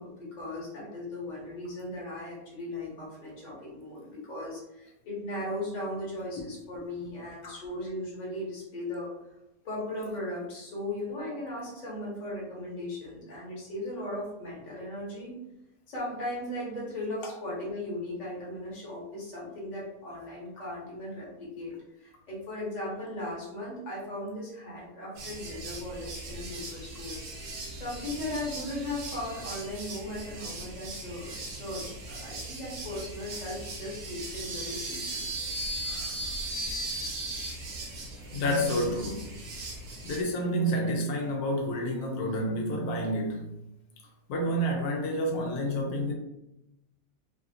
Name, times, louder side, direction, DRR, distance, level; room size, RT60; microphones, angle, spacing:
voice 1, 0.0-9.1 9.6-15.4 15.9-27.2 27.7-35.4, left 1 dB, 35° left, -5 dB, 1.0 m, -37 dB
sound 1, 25.2-40.2, right 2 dB, 85° right, 1.2 m, -38 dB
voice 2, 35.8-36.2 36.5-36.7 38.3-39.3 40.0-43.5 44.3-46.1, equal, 80° left, 0 dB, 1.1 m, -29 dB
3.2 x 2.4 x 2.7 m, 0.90 s
omnidirectional pair, 1.6 m